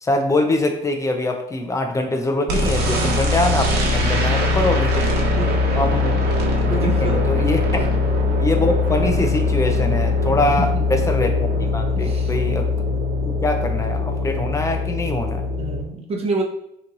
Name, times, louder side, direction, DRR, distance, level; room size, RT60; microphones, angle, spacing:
voice 1, 0.0-5.1 5.8-6.3 6.7-7.6 8.4-11.5 11.7-12.7 13.3-15.5, left 2 dB, 20° left, 4 dB, 0.7 m, -23 dB
sound 1, 2.5-15.8, left 3 dB, 70° right, 1.0 m, -21 dB
voice 2, 5.4-6.0 6.7-7.4 9.7-10.1 10.6-10.8 12.0-12.3 15.6-16.4, right 2 dB, 35° right, 0 dB, 0.9 m, -28 dB
5.7 x 3.1 x 2.6 m, 0.81 s
cardioid pair, 110°, 17 cm